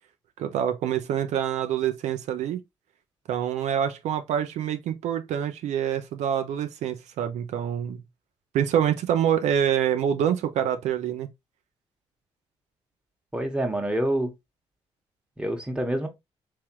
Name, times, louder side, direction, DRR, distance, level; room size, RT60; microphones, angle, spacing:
voice 1, 0.4-2.6 3.3-8.0 8.5-11.3, right 9 dB, 75° right, 0.6 m, -26 dB
voice 2, 13.3-14.3 15.4-16.1, right 1 dB, 10° right, 1.3 m, -27 dB
3.5 x 3.1 x 3.0 m
supercardioid pair, 65°, 12 cm